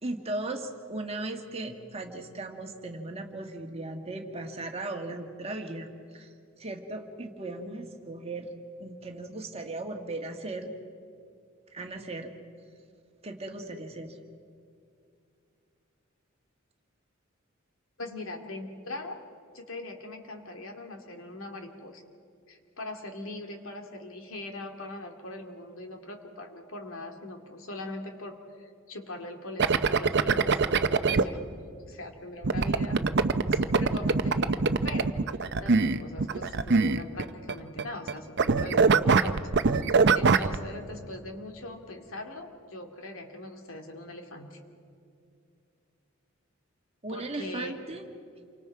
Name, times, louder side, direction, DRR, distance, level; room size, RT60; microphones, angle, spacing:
voice 1, 0.0-6.3 6.6-8.5 8.8-10.7 11.7-12.3 13.2-14.2 47.0-48.1 48.4-48.5, right 2 dB, 30° right, 4 dB, 1.8 m, -37 dB
voice 2, 18.0-19.2 19.5-22.0 22.5-30.6 31.1-31.4 31.9-33.0 33.5-35.1 35.4-39.4 39.7-44.6 47.1-47.8, left 2 dB, 80° left, 4 dB, 2.5 m, -41 dB
sound 1, 29.6-31.2 32.4-37.5 37.8-38.1 38.4-40.6, right 4 dB, 55° right, 0.7 m, -23 dB
28.5 x 24.5 x 4.7 m, 2.5 s
head